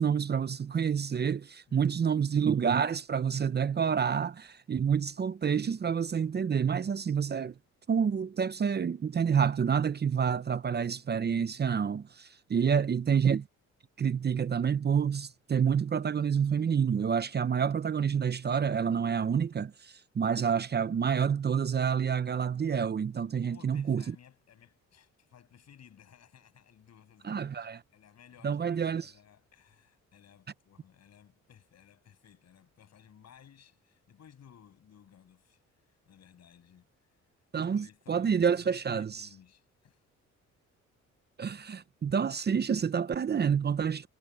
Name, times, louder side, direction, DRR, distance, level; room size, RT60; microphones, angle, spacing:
voice 1, 0.0-7.5 7.9-13.5 14.0-24.0 27.2-27.8 28.4-29.1 37.5-39.3 41.4-44.1, right 7 dB, 35° right, 0.7 m, -28 dB
voice 2, 1.7-2.4 12.3-12.9 23.4-36.9 37.5-40.0, left 9 dB, 60° left, 6.7 m, -58 dB
cardioid pair, 90°, 30 cm